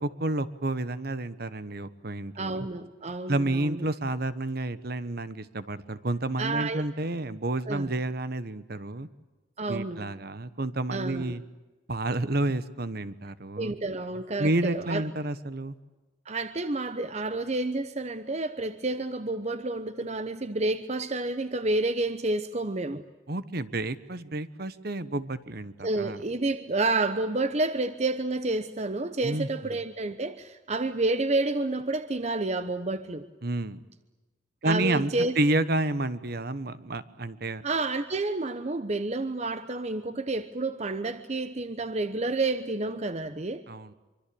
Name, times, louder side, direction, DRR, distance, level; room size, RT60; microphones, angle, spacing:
voice 1, 0.0-2.7 3.3-9.1 9.7-11.4 11.9-13.7 14.4-15.7 23.3-26.2 29.2-29.8 33.4-33.8 34.6-35.1 35.4-37.6 43.7-43.9, right 2 dB, 55° right, 1.2 m, -30 dB
voice 2, 2.4-3.8 6.4-6.9 7.7-7.9 9.6-10.1 10.9-11.3 13.6-15.0 16.3-23.0 25.8-33.3 34.6-35.4 37.6-43.6, right 2 dB, 35° right, 0.9 m, -29 dB
25.0 x 24.5 x 8.7 m
head